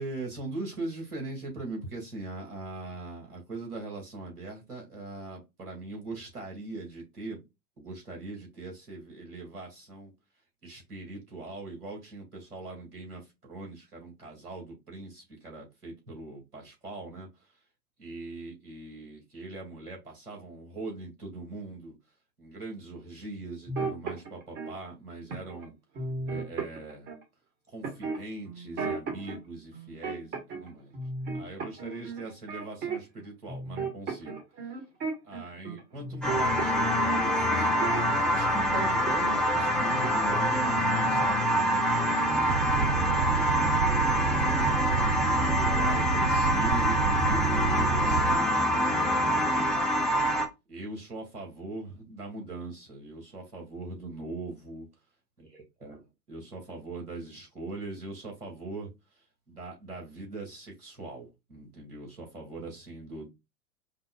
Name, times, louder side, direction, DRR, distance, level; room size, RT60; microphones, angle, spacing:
voice 1, 0.0-7.4 7.8-10.1 10.6-17.3 18.0-22.0 22.4-25.7 26.2-27.1 27.7-30.9 31.3-34.4 35.2-43.2 43.9-44.8 45.3-49.8 50.7-54.9 55.8-56.0 56.3-58.9 59.5-63.3, right 2 dB, 85° right, 2.1 m, -41 dB
sound 1, 23.7-24.7 25.3-25.6 25.9-27.2 27.8-29.4 29.7-30.7 30.9-33.2 33.5-38.3 38.7-39.4 39.7-40.7 41.0-41.2, right 4 dB, 25° right, 1.1 m, -35 dB
sound 2, 36.2-50.5, equal, ahead, 0.7 m, -26 dB
sound 3, 42.5-48.4, right 6 dB, 70° right, 0.5 m, -29 dB
5.1 x 2.2 x 2.3 m
figure-of-eight pair, 100°, 44 cm